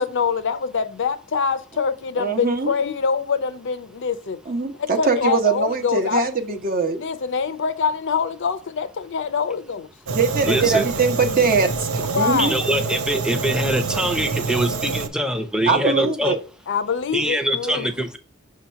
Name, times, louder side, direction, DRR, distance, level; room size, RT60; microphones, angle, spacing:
voice 1, 0.0-4.4 5.0-6.6 7.0-9.9 12.1-12.6 16.0-16.1 16.7-17.9, left 6 dB, 60° left, 0.6 m, -25 dB
voice 2, 2.2-2.7 4.5-7.0 10.1-12.5 15.7-16.4, right 4 dB, 45° right, 1.0 m, -21 dB
Fire, 10.1-15.1, right 4 dB, 80° right, 0.7 m, -26 dB
voice 3, 10.5-10.8 12.4-16.3 17.1-18.2, right 1 dB, 5° right, 0.7 m, -23 dB
6.2 x 2.9 x 5.6 m
head